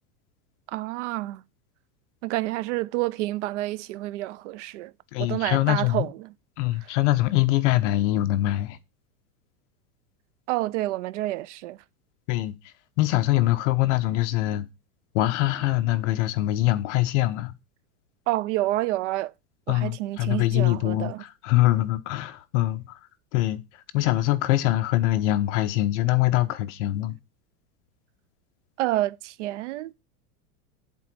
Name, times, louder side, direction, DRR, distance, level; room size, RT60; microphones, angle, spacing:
voice 1, 0.7-1.4 2.2-4.9 5.2-6.2 10.5-11.8 18.3-19.3 19.7-21.2 28.8-29.9, right 17 dB, 55° right, 0.5 m, -28 dB
voice 2, 5.1-6.1 6.6-8.8 12.3-12.5 13.0-14.7 15.1-17.5 19.7-23.0 23.3-23.6 23.9-27.2, left 16 dB, 55° left, 0.9 m, -23 dB
8.2 x 3.8 x 6.1 m
supercardioid pair, 160°, 44 cm